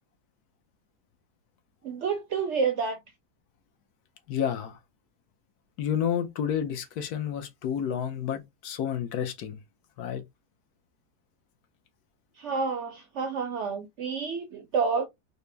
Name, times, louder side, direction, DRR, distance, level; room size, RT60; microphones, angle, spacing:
voice 1, 1.8-3.0 12.4-15.1, right 5 dB, 70° right, 0.7 m, -29 dB
voice 2, 4.3-4.8 5.8-9.6 10.0-10.2, left 9 dB, 75° left, 1.2 m, -30 dB
4.2 x 2.1 x 3.2 m
omnidirectional pair, 1.7 m